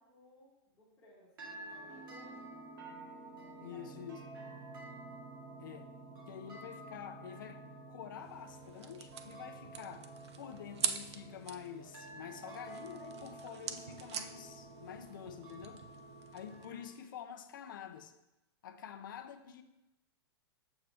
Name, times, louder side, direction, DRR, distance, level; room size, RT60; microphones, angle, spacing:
voice 1, 0.0-2.7 3.6-4.3, left 1 dB, 10° left, -10 dB, 1.4 m, -62 dB
sound 1, 1.4-16.8, right 2 dB, 55° right, 2.3 m, -50 dB
voice 2, 3.6-4.2 5.6-5.9 6.3-10.1 10.4-15.8 16.3-18.1 18.6-19.6, left 9 dB, 50° left, 8 dB, 0.6 m, -48 dB
sound 2, 8.2-16.7, right 8 dB, 85° right, 0.6 m, -44 dB
6.9 x 6.6 x 3.4 m, 0.97 s
supercardioid pair, 180°, 14 cm